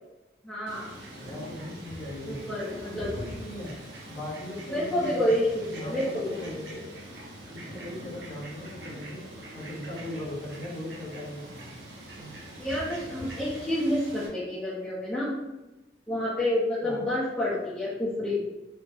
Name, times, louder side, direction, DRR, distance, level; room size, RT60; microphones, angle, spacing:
voice 1, 0.4-0.9 2.5-3.1 4.7-6.5 12.6-15.4 16.1-18.4, left 1 dB, 5° left, -9 dB, 0.5 m, -29 dB
Fowl, 0.7-14.3, right 1 dB, 70° right, 0.8 m, -43 dB
voice 2, 1.2-2.5 2.8-3.7 4.1-5.3 5.7-6.9 7.5-9.2 9.5-11.7 16.8-17.1, left 1 dB, 40° left, -6 dB, 1.0 m, -39 dB
3.4 x 2.0 x 3.2 m, 1.0 s
head